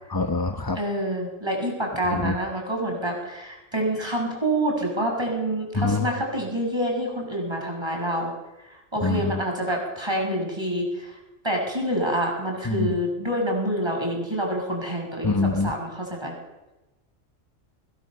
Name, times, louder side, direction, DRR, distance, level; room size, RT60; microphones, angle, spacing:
voice 1, 0.1-0.8 2.1-2.4 5.7-6.1 9.0-9.4 12.6-12.9 15.2-15.7, left 3 dB, 20° left, 6 dB, 0.9 m, -25 dB
voice 2, 0.7-8.3 8.7-11.2 11.4-16.3, right 1 dB, 20° right, 1 dB, 7.2 m, -27 dB
25.5 x 20.5 x 6.7 m, 1.0 s
omnidirectional pair, 1.3 m